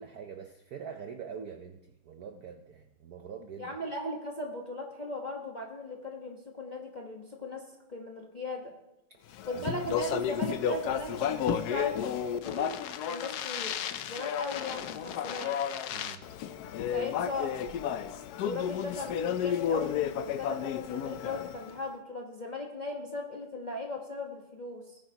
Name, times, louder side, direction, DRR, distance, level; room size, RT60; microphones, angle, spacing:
voice 1, 0.0-3.8 9.5-9.6 15.9-16.3, right 6 dB, 70° right, 5 dB, 0.9 m, -44 dB
voice 2, 3.6-7.6 7.9-8.7 9.5-12.8 13.1-13.8 14.1-15.6 16.9-17.7 18.4-25.0, left 2 dB, 30° left, -1 dB, 0.9 m, -38 dB
Speech, 9.3-21.7, left 9 dB, 85° left, 0.8 m, -32 dB
18.5 x 9.6 x 2.9 m, 0.87 s
omnidirectional pair, 2.4 m